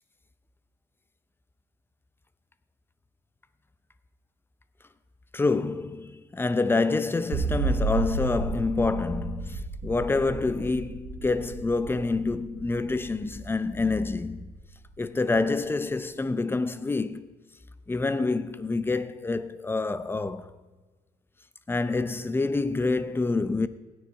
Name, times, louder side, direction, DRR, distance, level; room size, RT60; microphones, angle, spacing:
voice 1, 5.3-14.5 15.0-17.3 17.9-20.5 21.7-23.7, left 3 dB, 15° left, 0.6 m, -27 dB
sound 1, 7.3-14.5, right 3 dB, 85° right, 1.7 m, -32 dB
16.5 x 9.6 x 4.8 m
cardioid pair, 110°, 17 cm